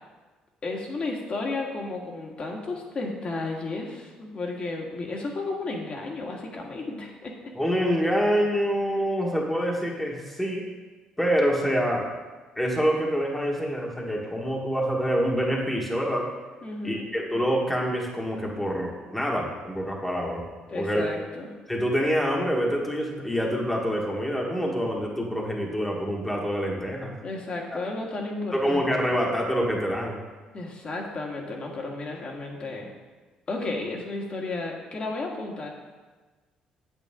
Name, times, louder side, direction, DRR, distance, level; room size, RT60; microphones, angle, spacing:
voice 1, 0.6-7.3 16.6-17.0 20.7-21.5 27.2-28.8 30.5-32.9 33.5-35.7, left 3 dB, 40° left, 0 dB, 1.8 m, -33 dB
voice 2, 7.5-10.6 11.2-12.1 12.6-16.3 16.8-20.4 20.7-21.0 21.7-27.1 27.7-27.8 28.5-30.2, equal, 5° left, -2 dB, 1.6 m, -26 dB
9.0 x 8.1 x 3.7 m, 1.3 s
cardioid pair, 95°, 3 cm